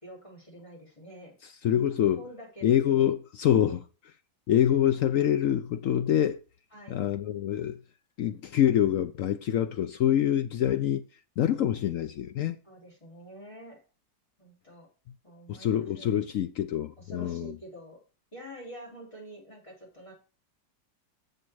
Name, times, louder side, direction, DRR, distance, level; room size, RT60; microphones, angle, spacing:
voice 1, 0.0-1.4 1.7-3.1 3.5-3.8 6.7-7.0 12.6-13.8 14.4-14.9 15.2-16.1 17.0-18.0 18.3-20.1, equal, 15° left, 4.2 m, -47 dB
voice 2, 1.6-2.2 2.6-3.8 4.5-6.4 6.9-7.8 8.2-11.0 11.4-12.6 15.5-17.6, left 10 dB, 80° left, 0.7 m, -25 dB
7.8 x 7.3 x 4.6 m
omnidirectional pair, 2.0 m